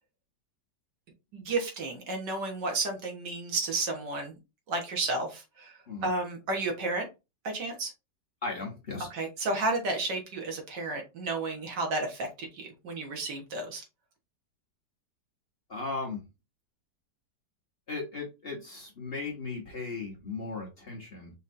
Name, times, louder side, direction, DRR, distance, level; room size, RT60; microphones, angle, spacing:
voice 1, 1.3-4.3 4.7-5.7 6.0-7.1 7.4-7.9 9.1-13.8, right 2 dB, 80° right, 2 dB, 2.0 m, -32 dB
voice 2, 8.4-9.1 15.7-16.2 17.9-21.3, left 3 dB, 40° left, -1 dB, 1.1 m, -37 dB
5.3 x 3.1 x 2.6 m, 0.26 s
omnidirectional pair, 1.8 m